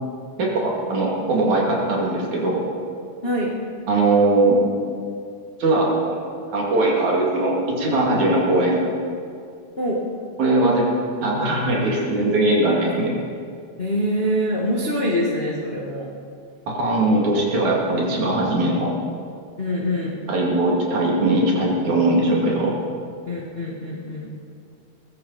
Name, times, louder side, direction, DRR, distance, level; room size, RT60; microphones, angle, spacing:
voice 1, 0.4-2.6 3.9-4.6 5.6-6.2 6.5-8.8 10.4-10.9 11.2-13.1 16.7-18.9 20.3-22.7, right 2 dB, 70° right, -3 dB, 4.0 m, -20 dB
voice 2, 13.8-16.1 19.6-20.2 23.3-24.3, equal, 25° left, -4 dB, 1.3 m, -24 dB
20.0 x 14.0 x 4.2 m, 2.3 s
omnidirectional pair, 3.5 m